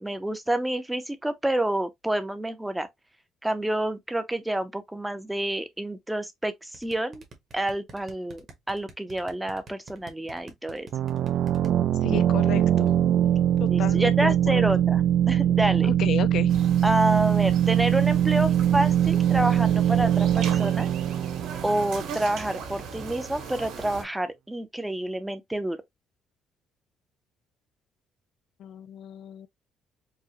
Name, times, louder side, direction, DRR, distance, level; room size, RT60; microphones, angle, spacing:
voice 1, 0.0-2.9 3.4-7.2 7.5-10.9 13.7-15.0 15.3-15.9 16.8-20.9 21.6-25.8, right 1 dB, 5° right, 0.5 m, -28 dB
sound 1, 6.7-11.7, right 3 dB, 35° right, 1.0 m, -47 dB
sound 2, 10.9-22.4, right 10 dB, 60° right, 0.3 m, -22 dB
voice 2, 12.0-12.9 13.6-14.6 15.8-16.5 28.6-29.5, left 10 dB, 60° left, 0.4 m, -33 dB
sound 3, 16.5-24.0, right 6 dB, 75° right, 1.8 m, -39 dB
4.7 x 2.1 x 2.9 m
cardioid pair, 145°, 0 cm